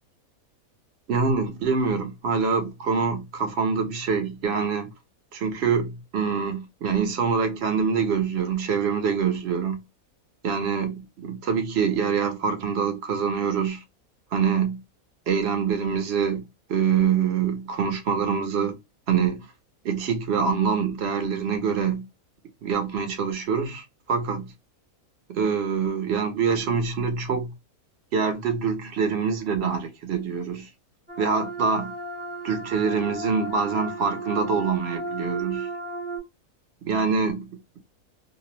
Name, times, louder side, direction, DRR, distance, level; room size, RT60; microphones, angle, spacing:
voice 1, 1.1-4.9 5.3-9.8 10.4-13.8 14.3-14.8 15.3-18.8 19.1-19.5 19.8-22.1 22.6-24.5 25.3-27.5 28.1-30.7 31.2-31.9 32.4-35.7 36.8-37.5, right 6 dB, 60° right, 0.7 m, -25 dB
sound 1, 31.1-36.2, right 2 dB, 10° right, 0.5 m, -34 dB
2.6 x 2.0 x 2.9 m
omnidirectional pair, 1.5 m